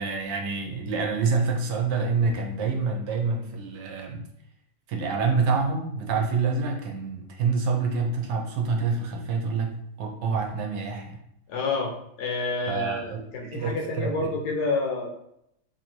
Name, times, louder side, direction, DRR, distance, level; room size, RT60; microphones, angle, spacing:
voice 1, 0.0-4.2 4.9-11.2 12.7-14.3, right 4 dB, 85° right, 2 dB, 1.4 m, -27 dB
voice 2, 11.5-15.1, left 3 dB, 70° left, 2 dB, 1.3 m, -29 dB
3.3 x 2.7 x 4.3 m, 0.76 s
omnidirectional pair, 1.8 m